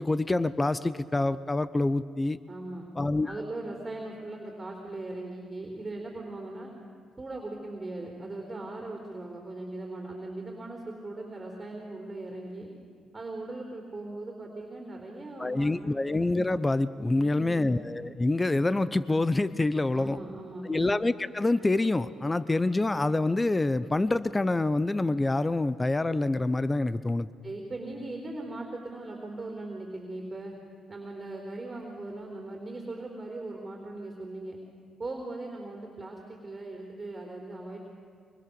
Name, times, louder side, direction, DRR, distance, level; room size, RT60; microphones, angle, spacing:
voice 1, 0.0-2.4 3.0-3.4 15.4-20.2 20.6-27.3, left 2 dB, 20° left, 16 dB, 0.7 m, -26 dB
voice 2, 2.5-2.9 3.2-6.7 7.2-12.7 13.1-16.0 17.1-17.7 19.9-20.9 27.4-30.5 30.9-34.6 35.0-37.8, right 2 dB, 25° right, 1 dB, 3.9 m, -39 dB
24.0 x 24.0 x 6.9 m, 2.2 s
cardioid pair, 90°, 0 cm